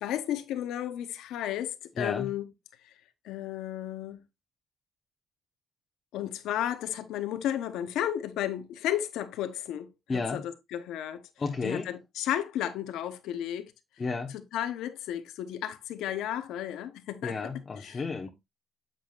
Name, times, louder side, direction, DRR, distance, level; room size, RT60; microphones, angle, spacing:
voice 1, 0.0-2.5 3.2-4.2 6.1-11.2 11.6-13.7 14.3-17.4 17.8-18.0, left 11 dB, 90° left, 0.9 m, -33 dB
voice 2, 2.0-2.3 10.1-10.4 11.4-11.9 14.0-14.3 17.2-18.3, left 4 dB, 35° left, 0.9 m, -32 dB
7.7 x 7.1 x 2.4 m
cardioid pair, 90°, 0 cm